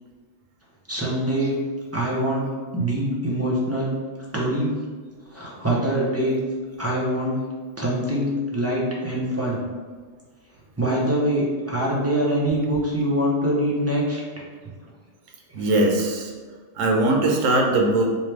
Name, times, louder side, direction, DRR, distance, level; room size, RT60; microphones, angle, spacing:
voice 1, 0.9-1.6 1.9-2.5 2.7-4.0 4.3-4.7 5.3-6.4 6.8-7.4 7.8-9.6 10.8-14.2 15.6-15.7, right 1 dB, 15° right, -5 dB, 0.5 m, -24 dB
voice 2, 15.5-16.3 16.8-18.1, right 2 dB, 85° right, 1 dB, 1.0 m, -20 dB
4.3 x 2.3 x 3.2 m, 1.5 s
omnidirectional pair, 1.3 m